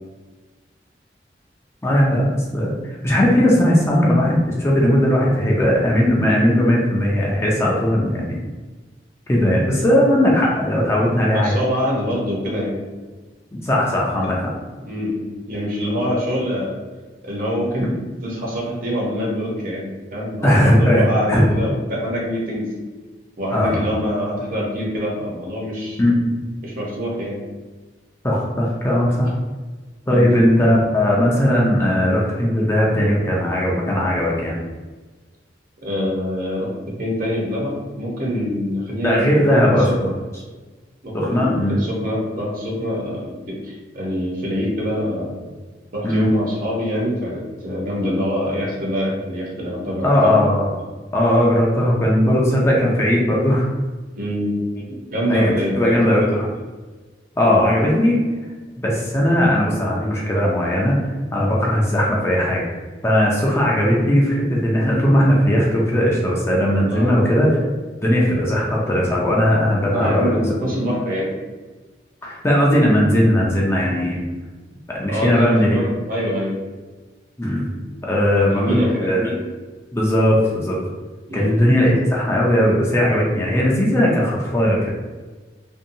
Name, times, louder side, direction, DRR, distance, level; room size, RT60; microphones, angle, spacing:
voice 1, 1.8-2.7 3.0-8.4 9.3-11.5 13.5-14.4 20.4-21.4 23.5-23.8 26.0-26.4 28.2-29.3 30.1-34.6 39.0-40.1 41.1-41.8 46.0-46.3 50.0-50.7 51.1-53.7 55.3-55.5 55.8-56.5 57.4-58.1 58.8-61.0 61.3-62.6 63.0-67.5 68.0-70.4 72.2-74.2 74.9-75.8 77.4-77.7 78.0-78.8 79.0-79.3 79.9-80.8 81.3-84.9, equal, 15° left, -4 dB, 0.4 m, -18 dB
voice 2, 11.3-12.8 14.2-14.3 14.9-15.2 15.5-16.7 17.2-17.9 18.2-22.7 23.4-26.0 26.6-27.4 30.1-30.3 35.8-40.1 41.0-45.4 45.9-50.3 54.1-54.6 55.1-56.0 66.9-67.2 69.9-71.3 75.1-76.6 78.4-79.2 81.3-81.5, equal, 50° right, -3 dB, 0.8 m, -24 dB
2.6 x 2.2 x 2.6 m, 1.3 s
head